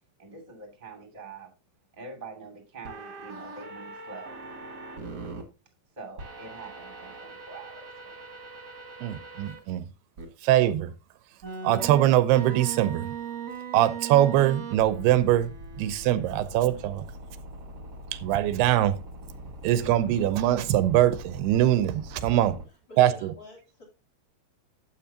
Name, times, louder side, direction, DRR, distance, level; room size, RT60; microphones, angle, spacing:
voice 1, 0.2-1.5 1.9-4.4 5.9-8.2, right 3 dB, 15° right, 1.8 m, -45 dB
sound 1, 2.8-5.4 6.2-9.6 10.2-10.3 11.4-22.6, right 4 dB, 35° right, 1.8 m, -40 dB
voice 2, 9.0-9.8 10.4-10.9 11.6-13.1 13.7-15.5 15.8-17.0 18.2-19.0 19.6-22.6 23.0-23.3, right 13 dB, 85° right, 2.8 m, -22 dB
voice 3, 22.9-23.8, left 2 dB, 25° left, 3.3 m, -48 dB
12.5 x 8.3 x 2.8 m
omnidirectional pair, 4.5 m